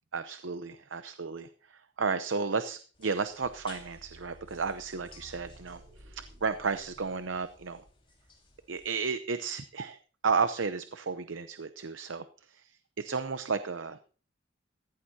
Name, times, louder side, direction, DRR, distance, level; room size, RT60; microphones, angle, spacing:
voice 1, 0.1-7.8 8.7-14.0, right 5 dB, 75° right, 11 dB, 0.7 m, -33 dB
sound 1, 2.9-9.1, left 4 dB, 25° left, 4.4 m, -58 dB
sound 2, 3.4-8.3, right 1 dB, 55° right, 3.8 m, -55 dB
16.0 x 15.0 x 2.8 m, 0.39 s
head